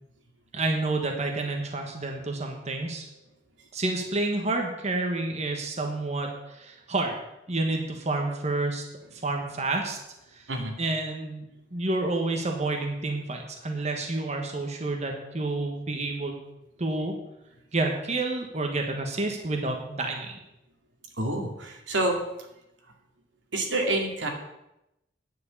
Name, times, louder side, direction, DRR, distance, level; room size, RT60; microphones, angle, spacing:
voice 1, 0.5-3.1 3.7-7.1 7.5-8.8 9.1-10.0 10.3-10.5 10.8-11.4 11.7-16.4 16.8-17.1 17.7-20.3, right 2 dB, 40° right, 3 dB, 1.3 m, -29 dB
voice 2, 21.2-22.2 23.5-24.3, right 1 dB, 90° right, 2 dB, 2.3 m, -27 dB
9.8 x 6.3 x 8.5 m, 0.89 s
head